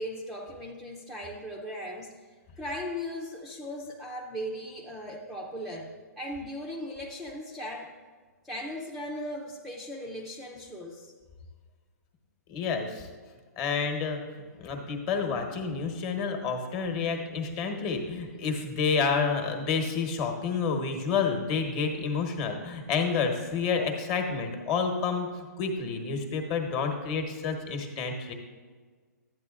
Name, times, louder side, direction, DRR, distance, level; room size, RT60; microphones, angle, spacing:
voice 1, 0.0-2.1 2.6-7.9 8.4-11.1, equal, ahead, -3 dB, 0.5 m, -38 dB
voice 2, 12.5-13.1 13.6-28.3, left 5 dB, 30° left, 4 dB, 1.1 m, -29 dB
12.5 x 8.7 x 2.4 m, 1.5 s
hypercardioid pair, 155°, 9 cm